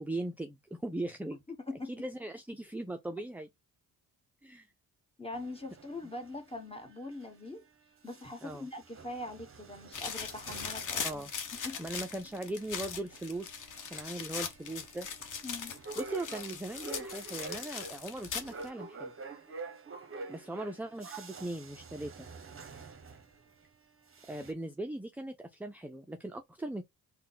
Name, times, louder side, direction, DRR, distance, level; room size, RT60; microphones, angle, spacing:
voice 1, 0.0-1.4 1.9-3.5 4.4-4.7 8.4-8.7 11.0-11.3 11.8-13.6 13.9-15.1 16.0-19.1 20.3-22.3 24.3-26.8, right 1 dB, 5° right, 0.4 m, -39 dB
voice 2, 1.5-2.0 5.2-7.6 8.0-11.0 11.6-11.8 15.4-15.8, left 2 dB, 15° left, 1.3 m, -42 dB
sound 1, 5.3-7.7 8.0-23.7 24.0-24.5, right 3 dB, 35° right, 1.0 m, -48 dB
sound 2, 9.9-18.7, left 6 dB, 50° left, 1.0 m, -40 dB
3.6 x 2.2 x 4.1 m
cardioid pair, 70°, 39 cm